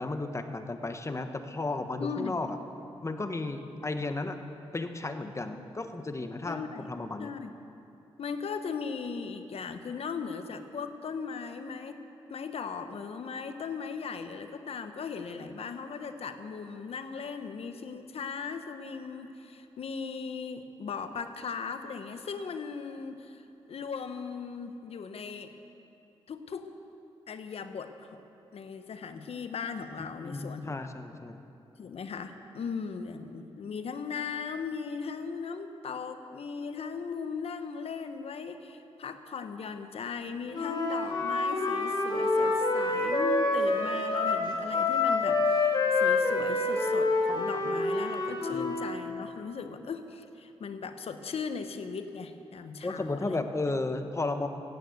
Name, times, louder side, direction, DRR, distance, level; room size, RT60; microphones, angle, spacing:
voice 1, 0.0-2.6 3.0-4.4 4.7-7.3 30.2-31.4 48.6-48.7 52.8-54.5, left 2 dB, 25° left, 7 dB, 1.2 m, -34 dB
voice 2, 2.0-2.5 6.5-6.9 7.2-7.5 8.2-12.0 12.3-25.5 26.3-26.7 27.3-28.2 28.5-30.7 31.1-31.2 31.8-53.4, left 5 dB, 70° left, 8 dB, 1.0 m, -38 dB
Wind instrument woodwind instrument, 40.5-49.0, left 3 dB, 45° left, 2.9 m, -27 dB
15.5 x 9.5 x 8.2 m, 2.8 s
cardioid pair, 60°, 11 cm